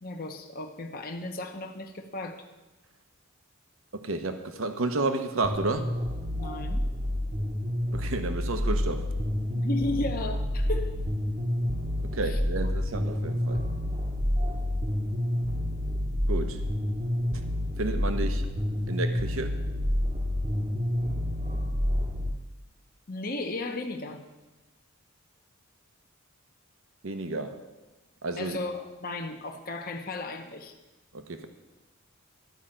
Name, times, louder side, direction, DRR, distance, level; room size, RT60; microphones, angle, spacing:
voice 1, 0.0-2.4 6.3-6.8 9.5-11.0 12.3-12.4 23.1-24.2 28.4-30.7, left 2 dB, 45° left, 3 dB, 0.9 m, -34 dB
voice 2, 3.9-5.9 7.9-9.1 12.1-13.6 16.3-16.7 17.3-17.4 17.8-18.5 18.9-19.5 27.0-27.6 28.2-28.6 31.1-31.5, right 2 dB, 70° right, 7 dB, 0.9 m, -31 dB
sound 1, 5.4-22.3, left 1 dB, 30° right, 0.9 m, -29 dB
12.0 x 5.6 x 8.8 m, 1.1 s
head